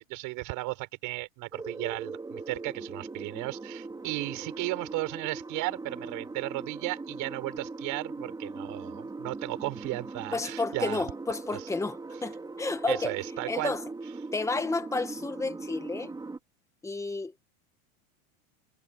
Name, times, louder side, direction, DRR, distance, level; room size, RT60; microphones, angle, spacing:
voice 1, 0.1-11.1 11.5-11.6 12.9-13.7, right 23 dB, 45° right, 7.3 m, -35 dB
sound 1, 1.5-16.4, right 3 dB, 10° right, 4.8 m, -40 dB
voice 2, 10.3-13.8 14.3-16.1 16.8-17.4, left 3 dB, 5° left, 1.4 m, -32 dB
supercardioid pair, 155°, 44 cm